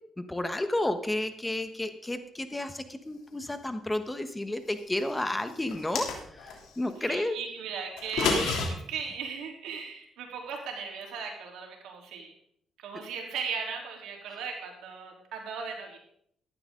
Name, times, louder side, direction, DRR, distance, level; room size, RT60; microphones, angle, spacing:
voice 1, 0.2-7.4, left 1 dB, 15° left, 9 dB, 1.2 m, -32 dB
sound 1, 5.7-6.6 8.0-8.7, left 4 dB, 85° left, 3.2 m, -28 dB
voice 2, 7.0-12.3 12.8-16.0, right 6 dB, 85° right, 0 dB, 3.5 m, -37 dB
14.5 x 11.5 x 3.8 m, 0.68 s
cardioid pair, 90°, 0 cm